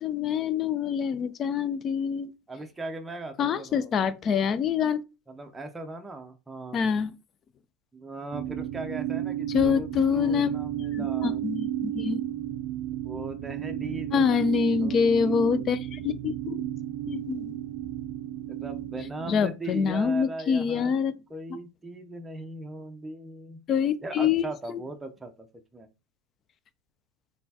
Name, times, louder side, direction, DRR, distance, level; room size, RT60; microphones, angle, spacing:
voice 1, 0.0-2.3 3.4-5.0 6.7-7.1 9.5-10.5 10.8-12.2 14.1-16.6 17.1-17.6 19.3-21.2 23.7-24.8, left 6 dB, 35° left, 0.4 m, -26 dB
voice 2, 2.5-3.9 5.3-6.9 7.9-11.4 13.0-15.7 18.5-20.9 21.3-23.7 24.0-25.5 25.7-25.9, right 2 dB, 10° right, 0.6 m, -39 dB
sound 1, 8.3-19.4, right 13 dB, 55° right, 0.4 m, -33 dB
4.2 x 3.3 x 2.8 m
supercardioid pair, 135°, 0 cm